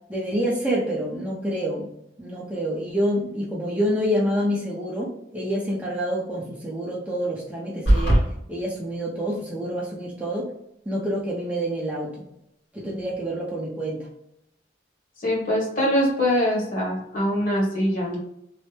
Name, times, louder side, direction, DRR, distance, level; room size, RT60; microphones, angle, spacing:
voice 1, 0.1-1.9 2.2-8.2 8.5-10.5 10.9-12.3 12.7-14.1, equal, 10° right, -5 dB, 0.5 m, -27 dB
sound 1, 7.9-8.3, right 1 dB, 70° left, 1.5 m, -17 dB
voice 2, 15.2-18.2, equal, 45° left, -3 dB, 1.1 m, -23 dB
3.1 x 2.0 x 3.2 m, 0.78 s
head